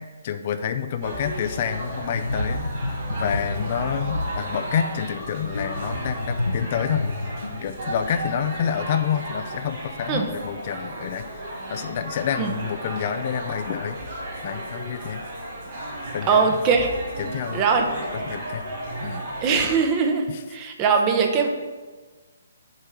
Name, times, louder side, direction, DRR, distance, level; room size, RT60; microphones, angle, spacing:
voice 1, 0.0-2.6 3.1-11.2 11.7-15.2 16.1-16.5 17.2-17.6 18.3-18.6 19.0-19.2 20.3-20.4, left 8 dB, 45° left, 9 dB, 0.4 m, -28 dB
sound 1, 1.0-19.7, right 1 dB, 55° right, 2.1 m, -34 dB
sound 2, 2.1-9.5 9.8-10.0, left 2 dB, 85° left, 0.8 m, -31 dB
voice 2, 16.2-16.9 17.5-17.9 19.4-21.5, right 5 dB, 25° right, 3 dB, 0.9 m, -21 dB
6.7 x 4.4 x 6.1 m, 1.4 s
figure-of-eight pair, 140°, 0 cm